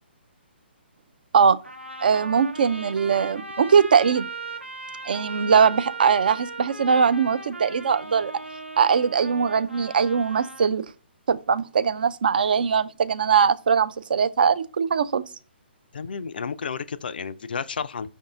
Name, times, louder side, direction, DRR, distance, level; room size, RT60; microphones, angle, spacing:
Trumpet, 1.6-10.7, right 3 dB, 85° right, 0.8 m, -38 dB
voice 1, 2.0-4.3 5.1-8.3 8.8-10.8 11.3-15.2, right 6 dB, 55° right, 0.3 m, -21 dB
voice 2, 15.9-18.1, left 6 dB, 55° left, 0.3 m, -32 dB
5.2 x 2.6 x 3.7 m
figure-of-eight pair, 130°, 6 cm